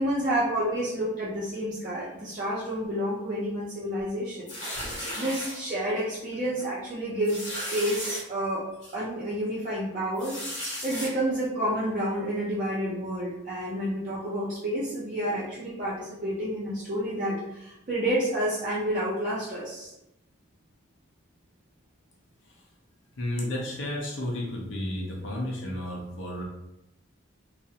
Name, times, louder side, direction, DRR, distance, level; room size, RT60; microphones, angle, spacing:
voice 1, 0.0-4.5 5.2-8.6 8.9-10.4 10.8-19.9, right 1 dB, 40° right, -8 dB, 0.4 m, -29 dB
sound 1, 4.5-5.6 6.2-6.3 6.6-6.7 7.2-8.2 8.8-8.9 10.2-11.1, left 1 dB, 60° left, 0.9 m, -35 dB
voice 2, 23.2-26.4, left 1 dB, 75° left, -2 dB, 0.6 m, -32 dB
2.4 x 2.0 x 2.7 m, 0.88 s
head